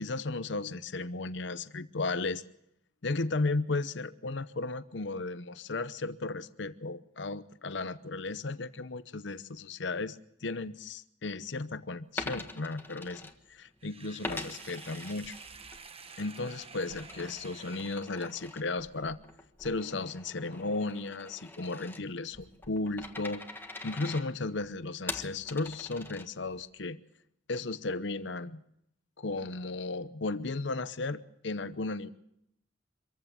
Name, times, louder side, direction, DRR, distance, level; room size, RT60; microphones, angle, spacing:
voice 1, 0.0-2.4 3.0-13.2 13.5-15.4 16.2-19.2 19.6-23.4 23.8-27.0 27.5-28.6 29.2-32.1, left 3 dB, 70° left, 14 dB, 0.8 m, -35 dB
Coin (dropping), 12.1-13.8 14.2-15.8 16.2-26.6, left 2 dB, 10° left, 1.5 m, -44 dB
Sink (filling or washing), 13.8-18.7, right 5 dB, 30° right, 1.1 m, -50 dB
25.0 x 15.0 x 7.3 m, 0.76 s
head